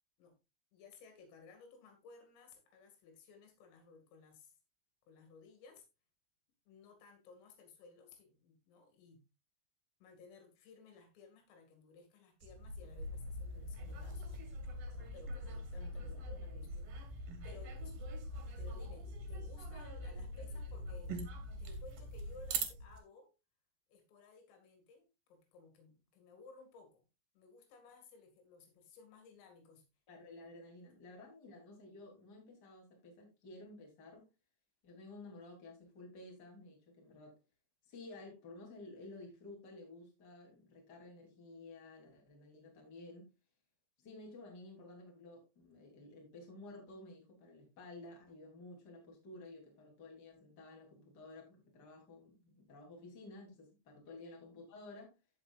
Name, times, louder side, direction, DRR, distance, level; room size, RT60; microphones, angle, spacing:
voice 1, 0.7-4.5 5.1-5.8 6.7-9.2 10.0-14.4 14.9-16.9 17.4-17.9 18.6-21.2 21.6-23.3 23.9-27.0 27.3-29.8 54.1-54.2, left 4 dB, 80° left, 4.7 m, -58 dB
sound 1, 12.4-23.0, right 1 dB, 60° right, 2.7 m, -43 dB
voice 2, 15.7-16.6 30.1-34.3 34.8-37.4 37.9-43.3 44.0-55.1, left 2 dB, 25° left, 2.8 m, -53 dB
15.5 x 5.8 x 2.4 m
omnidirectional pair, 5.9 m